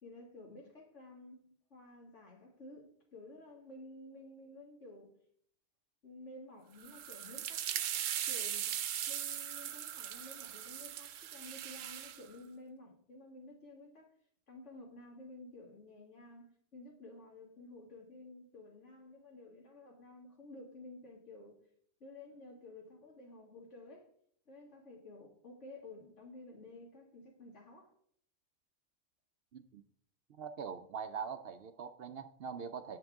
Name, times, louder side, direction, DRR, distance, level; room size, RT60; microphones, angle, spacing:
voice 1, 0.0-5.1 6.0-7.9 8.3-8.8 9.1-14.1 14.5-16.5 16.7-21.6 22.0-24.1 24.5-27.9, left 2 dB, 70° left, 2.4 m, -53 dB
sound 1, 6.8-12.2, right 10 dB, 85° right, 1.0 m, -39 dB
voice 2, 30.4-33.0, right 6 dB, 65° right, 0.6 m, -43 dB
8.9 x 7.8 x 3.5 m
omnidirectional pair, 1.3 m